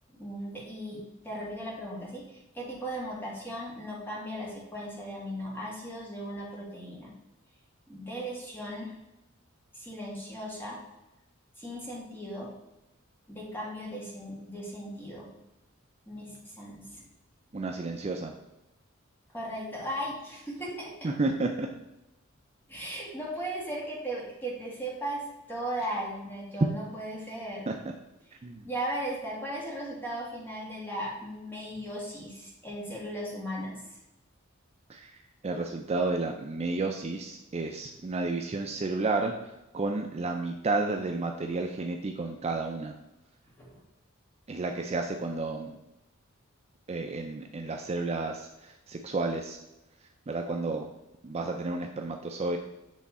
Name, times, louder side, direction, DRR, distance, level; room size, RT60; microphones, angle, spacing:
voice 1, 0.1-7.1 7.9-8.9 9.7-10.8 11.6-12.5 13.3-15.4 16.1-17.1 19.3-21.2 22.7-27.7 28.6-34.0 43.6-43.8, right 1 dB, 10° left, -4 dB, 1.9 m, -37 dB
voice 2, 17.5-18.3 21.0-21.7 27.7-27.8 28.4-28.7 34.9-35.1 35.4-39.3 39.7-42.9 44.5-45.8 46.9-49.6 50.3-50.9 51.2-52.6, right 3 dB, 30° right, 3 dB, 0.4 m, -31 dB
8.3 x 3.5 x 4.2 m, 0.94 s
head